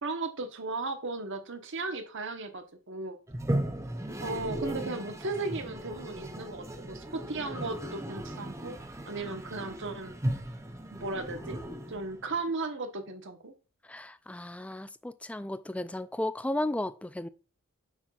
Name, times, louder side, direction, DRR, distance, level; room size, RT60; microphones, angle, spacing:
voice 1, 0.0-3.2 4.2-8.8 9.0-10.2 10.9-11.6 11.9-13.5, right 3 dB, 60° right, 1.2 m, -36 dB
Toilet flush, 3.3-12.4, right 1 dB, 15° right, 0.7 m, -36 dB
voice 2, 13.9-17.3, left 1 dB, 5° left, 0.3 m, -34 dB
7.1 x 5.7 x 2.4 m
head